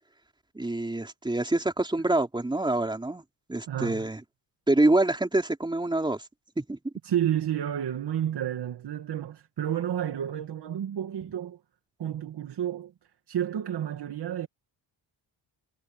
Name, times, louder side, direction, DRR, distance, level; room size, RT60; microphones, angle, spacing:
voice 1, 0.5-3.2 3.5-4.2 4.7-6.2 6.6-6.8, right 2 dB, 10° right, 3.9 m, -26 dB
voice 2, 3.7-4.1 7.0-11.6 12.0-12.9 13.3-14.5, right 10 dB, 60° right, 2.3 m, -30 dB
wide cardioid pair, 155°, 44 cm